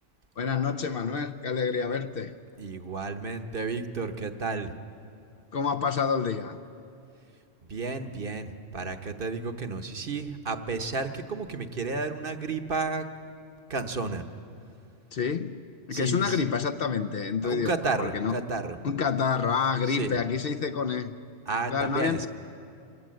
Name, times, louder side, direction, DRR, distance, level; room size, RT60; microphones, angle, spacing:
voice 1, 0.4-2.3 5.5-6.6 15.1-15.6 15.9-18.4 18.8-21.2 21.7-22.3, left 6 dB, 55° left, 7 dB, 0.8 m, -28 dB
voice 2, 2.6-4.7 7.7-13.1 13.7-14.2 15.9-16.4 17.4-18.8 19.9-20.2 21.5-22.3, right 4 dB, 50° right, 8 dB, 1.1 m, -32 dB
25.5 x 17.5 x 7.6 m, 2.5 s
omnidirectional pair, 1.3 m